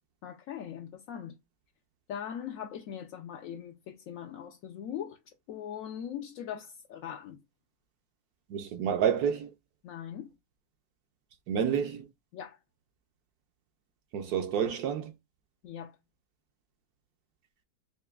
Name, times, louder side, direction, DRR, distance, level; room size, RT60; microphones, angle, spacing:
voice 1, 0.2-1.4 2.1-5.2 5.5-7.4 9.8-10.3 12.3-12.6 15.6-16.0, left 9 dB, 75° left, 0.7 m, -40 dB
voice 2, 8.5-9.5 11.5-12.0 14.1-15.1, right 8 dB, 70° right, 1.0 m, -29 dB
6.5 x 2.2 x 2.3 m
omnidirectional pair, 1.9 m